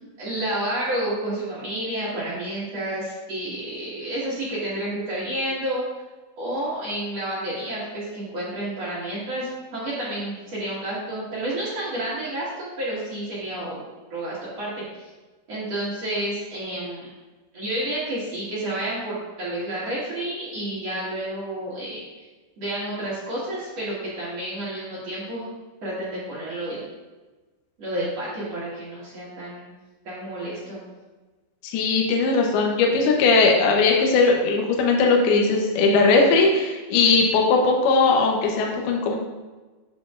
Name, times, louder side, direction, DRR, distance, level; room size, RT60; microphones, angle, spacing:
voice 1, 0.2-5.8 6.4-13.8 14.1-15.1 15.5-17.1 17.5-22.0 22.6-25.5 25.8-26.8 27.8-29.7 30.0-30.8, right 1 dB, 60° right, -9 dB, 1.7 m, -30 dB
voice 2, 31.6-39.2, left 4 dB, 80° left, 0 dB, 2.3 m, -19 dB
9.5 x 6.9 x 2.5 m, 1.2 s
omnidirectional pair, 5.6 m